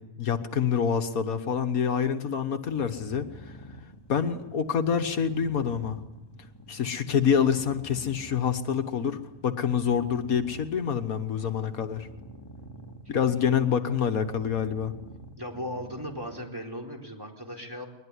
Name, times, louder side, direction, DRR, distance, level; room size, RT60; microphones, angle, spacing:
voice 1, 0.0-3.3 4.1-6.0 6.7-12.1 13.1-14.9, left 7 dB, 75° left, 8 dB, 1.7 m, -26 dB
sound 1, 2.6-16.4, equal, 15° left, 2.4 m, -48 dB
voice 2, 15.4-17.9, equal, 15° right, 3 dB, 4.2 m, -38 dB
22.0 x 20.5 x 9.9 m, 0.98 s
omnidirectional pair, 1.5 m